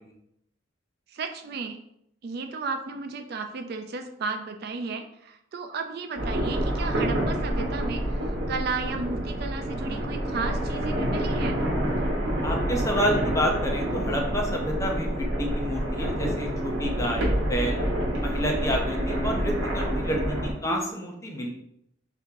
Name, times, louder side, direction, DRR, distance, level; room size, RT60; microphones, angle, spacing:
voice 1, 1.1-1.8 2.2-11.6, right 4 dB, 55° right, 7 dB, 0.4 m, -34 dB
sound 1, 6.2-20.5, right 1 dB, 85° right, 1.0 m, -27 dB
voice 2, 12.4-17.8 18.2-21.5, equal, 15° left, 0 dB, 0.6 m, -29 dB
3.5 x 2.8 x 3.6 m, 0.74 s
head